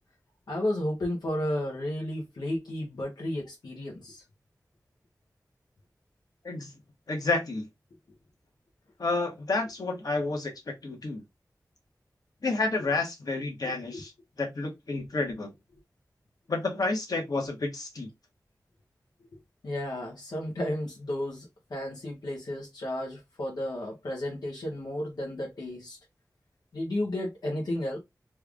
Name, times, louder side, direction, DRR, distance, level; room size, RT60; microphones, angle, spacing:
voice 1, 0.5-4.2 13.9-14.0 19.6-26.0 26.7-28.0, left 1 dB, 90° left, 1.0 m, -33 dB
voice 2, 7.1-7.7 9.0-11.2 12.4-14.1 14.4-15.5 16.5-18.1, left 3 dB, 70° left, 1.3 m, -30 dB
3.4 x 2.4 x 3.3 m
wide cardioid pair, 55°, 7 cm